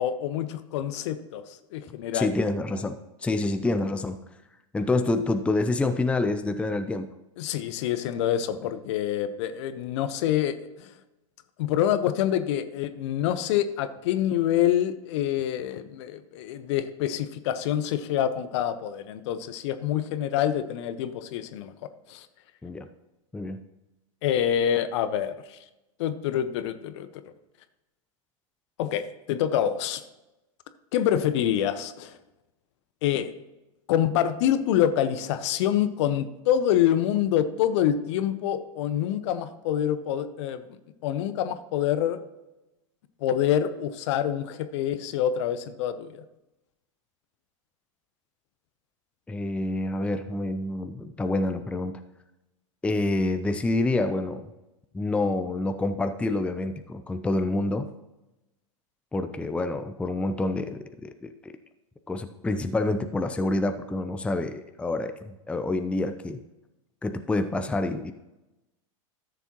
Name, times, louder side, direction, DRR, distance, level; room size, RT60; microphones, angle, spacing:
voice 1, 0.0-1.4 1.7-2.3 7.4-10.9 11.6-21.7 22.1-22.3 24.2-25.6 26.0-27.1 28.8-30.0 30.9-32.2 33.0-33.3 33.9-40.6 41.0-42.2 43.2-46.2, left 10 dB, 55° left, 11 dB, 0.8 m, -26 dB
voice 2, 2.1-4.2 4.7-7.1 22.6-22.9 23.3-23.6 49.3-52.0 52.8-54.5 54.9-57.9 59.1-61.5 62.1-66.4 67.0-68.1, left 2 dB, 5° left, 8 dB, 0.5 m, -27 dB
13.5 x 7.0 x 3.0 m, 0.98 s
hypercardioid pair, 95°, 17 cm